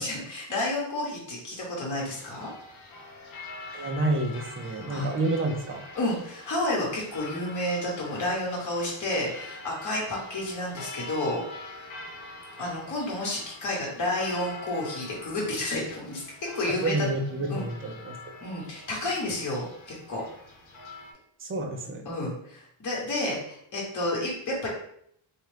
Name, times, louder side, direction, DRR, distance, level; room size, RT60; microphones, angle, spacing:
voice 1, 0.0-2.5 4.9-5.1 6.0-11.4 12.6-16.2 16.5-16.9 17.5-17.6 18.4-20.2 22.0-24.7, left 1 dB, 35° left, -3 dB, 1.1 m, -30 dB
sound 1, 2.0-21.1, left 2 dB, 70° left, 1.0 m, -45 dB
voice 2, 3.7-5.8 16.8-18.2 21.4-22.1, right 2 dB, 25° right, 3 dB, 0.4 m, -29 dB
4.1 x 2.4 x 3.2 m, 0.67 s
wide cardioid pair, 160°, 50 cm